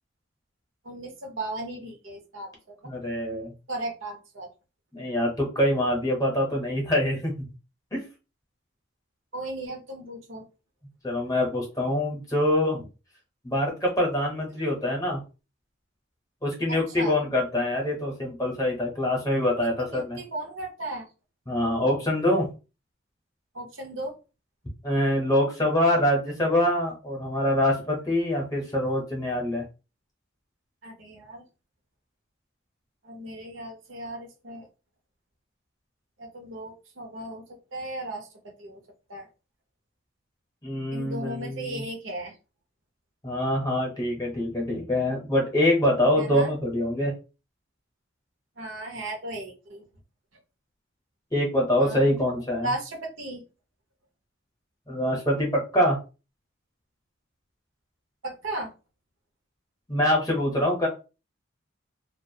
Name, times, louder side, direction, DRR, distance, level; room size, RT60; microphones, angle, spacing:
voice 1, 0.8-2.9 3.7-4.5 9.3-10.4 16.7-17.2 19.8-21.0 23.5-24.2 30.8-31.4 33.0-34.7 36.2-37.4 37.7-38.3 38.6-38.8 39.1-39.3 40.9-42.3 46.2-46.5 48.6-49.8 51.8-52.2 52.6-53.4 58.2-58.7, right 1 dB, 75° right, 3 dB, 0.7 m, -36 dB
voice 2, 2.8-3.5 4.9-7.3 7.9-8.0 11.0-12.8 13.4-15.2 16.4-20.2 21.5-22.5 24.8-29.6 40.6-41.8 43.2-47.1 51.3-52.7 54.9-56.0 59.9-60.9, left 1 dB, 15° left, -2 dB, 0.8 m, -25 dB
2.4 x 2.2 x 2.7 m, 0.31 s
head